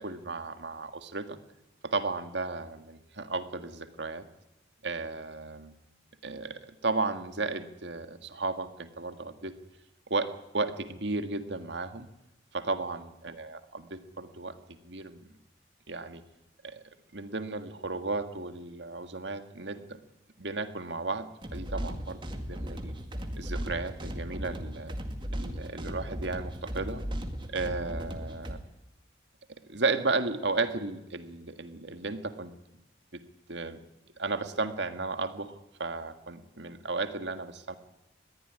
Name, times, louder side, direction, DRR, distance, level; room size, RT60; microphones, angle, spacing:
voice 1, 0.0-1.4 1.8-4.2 4.8-5.7 6.2-9.6 10.1-12.1 12.5-14.6 14.8-15.2 15.9-16.2 16.6-16.8 17.1-20.0 20.4-23.0 23.4-24.9 25.3-27.0 27.5-28.6 29.7-32.5 33.1-33.2 33.5-33.8 34.2-35.5 35.8-37.8, right 3 dB, 70° right, 9 dB, 1.8 m, -34 dB
sound 1, 21.4-28.5, equal, 25° right, 2.2 m, -36 dB
21.5 x 15.0 x 10.0 m, 0.92 s
head